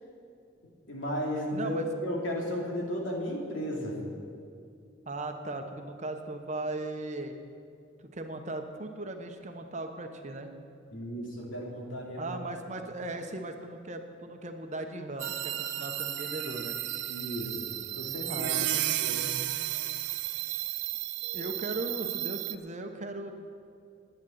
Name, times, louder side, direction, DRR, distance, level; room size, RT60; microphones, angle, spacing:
voice 1, 0.9-4.0 10.9-12.4 12.8-12.9 17.1-18.5 18.8-19.2, equal, 85° left, -2 dB, 2.7 m, -34 dB
voice 2, 1.5-1.9 5.1-7.4 8.0-10.5 12.2-16.7 18.3-19.0 21.3-23.3, right 2 dB, 40° right, 6 dB, 0.9 m, -38 dB
sound 1, 15.2-22.5, right 14 dB, 65° right, 0.5 m, -33 dB
10.5 x 9.9 x 7.8 m, 2.4 s
head